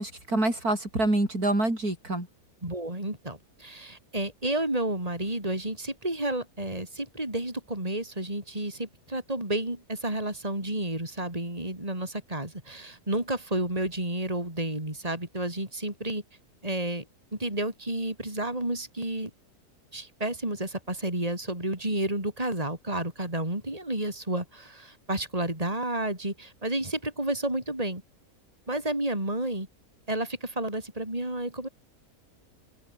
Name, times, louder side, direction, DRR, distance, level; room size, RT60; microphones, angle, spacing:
voice 1, 0.0-2.3, right 2 dB, 70° right, 8.3 m, -26 dB
voice 2, 2.6-16.2 16.6-17.0 17.3-19.3 19.9-28.0 28.7-29.7 30.1-31.7, right 1 dB, 25° right, 5.8 m, -31 dB
open air
omnidirectional pair, 1.6 m